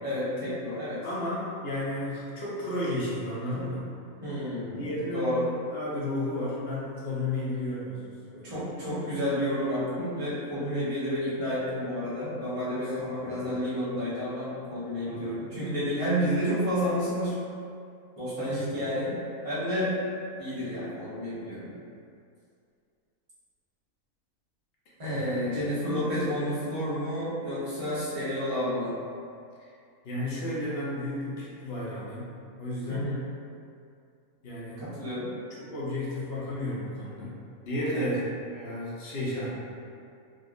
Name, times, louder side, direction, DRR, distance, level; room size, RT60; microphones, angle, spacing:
voice 1, 0.0-1.0 4.2-5.4 8.4-17.4 18.2-19.2 19.4-19.9 20.4-21.7 25.0-28.9 32.9-33.3 34.8-35.3 37.9-38.1, equal, 30° right, -10 dB, 0.7 m, -30 dB
voice 2, 1.0-3.8 4.7-5.4 5.7-8.6 13.2-13.5 15.0-15.4 25.1-25.5 30.0-33.1 34.4-34.9 35.6-37.3 37.6-39.5, left 1 dB, 60° left, -7 dB, 0.7 m, -33 dB
3.6 x 2.0 x 2.4 m, 2.4 s
omnidirectional pair, 1.5 m